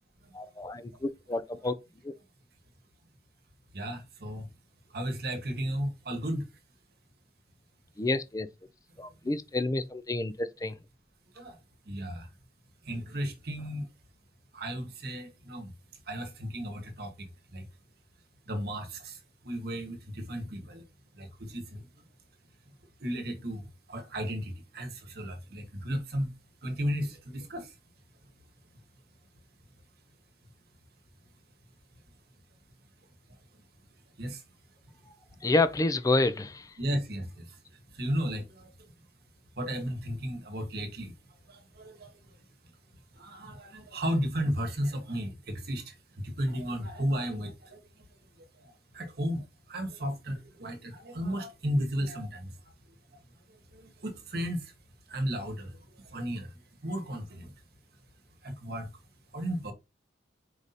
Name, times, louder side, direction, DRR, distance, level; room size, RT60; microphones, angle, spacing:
voice 1, 0.3-1.7 2.0-2.1 8.0-8.5 9.0-10.7 35.4-36.7, left 2 dB, 20° left, 0.4 m, -29 dB
voice 2, 3.7-4.5 4.9-6.5 11.3-11.6 11.8-12.3 12.8-13.9 14.5-15.7 16.1-17.1 17.5-17.6 18.5-19.2 19.4-20.8 21.1-21.8 23.0-26.3 26.6-27.7 34.2-34.4 36.8-37.6 37.9-38.9 39.6-41.1 41.5-42.1 43.1-47.8 48.6-52.5 53.7-54.7 55.1-55.8 56.0-56.5 56.8-57.5 58.4-58.9 59.3-59.7, equal, 55° right, 1.1 m, -34 dB
4.7 x 2.7 x 4.1 m
head